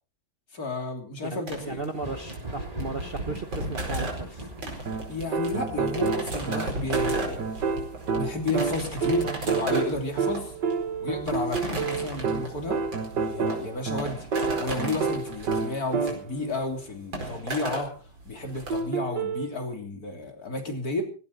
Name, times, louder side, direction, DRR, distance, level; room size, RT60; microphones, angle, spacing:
voice 1, 0.5-1.8 5.1-7.6 8.2-10.5 11.0-12.8 13.3-14.3 14.6-17.9 18.3-21.0, left 2 dB, 50° left, 4 dB, 3.7 m, -32 dB
voice 2, 1.3-4.5, right 3 dB, 35° right, 7 dB, 1.2 m, -36 dB
sound 1, 1.5-18.8, right 2 dB, 85° right, 5.4 m, -36 dB
Thunder, 1.9-11.2 11.6-12.8 14.3-14.4 15.2-15.4, right 1 dB, 20° right, 2.3 m, -43 dB
sound 2, 4.9-16.5 18.7-19.5, right 5 dB, 65° right, 1.9 m, -29 dB
17.5 x 17.5 x 4.2 m, 0.38 s
omnidirectional pair, 2.0 m